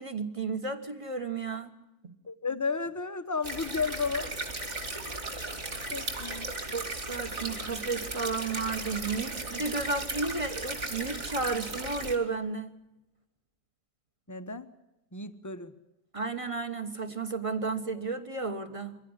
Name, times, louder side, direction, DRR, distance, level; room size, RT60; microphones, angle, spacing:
voice 1, 0.0-1.7 2.0-2.1 6.7-12.7 16.1-19.0, right 4 dB, 20° right, 9 dB, 1.1 m, -33 dB
voice 2, 2.3-4.3 5.9-6.5 14.3-14.7 15.1-15.7, left 4 dB, 15° left, 10 dB, 0.6 m, -33 dB
sound 1, 3.4-12.2, right 2 dB, 40° right, 3.0 m, -36 dB
23.5 x 17.0 x 9.7 m, 0.94 s
omnidirectional pair, 1.9 m